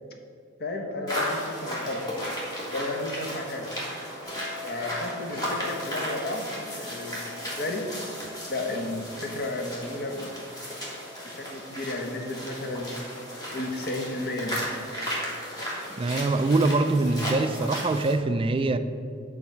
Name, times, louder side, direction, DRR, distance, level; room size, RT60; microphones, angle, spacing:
voice 1, 0.6-2.1 2.7-3.7 4.6-7.9 8.5-10.3 11.2-13.0 13.5-14.6, left 2 dB, 55° left, 3 dB, 1.0 m, -33 dB
sound 1, 1.1-18.2, equal, 20° left, 1.9 m, -35 dB
sound 2, 4.2-15.1, left 5 dB, ahead, 1.9 m, -48 dB
voice 2, 16.0-18.8, right 2 dB, 25° right, 9 dB, 0.4 m, -23 dB
9.3 x 3.9 x 5.9 m, 2.4 s
head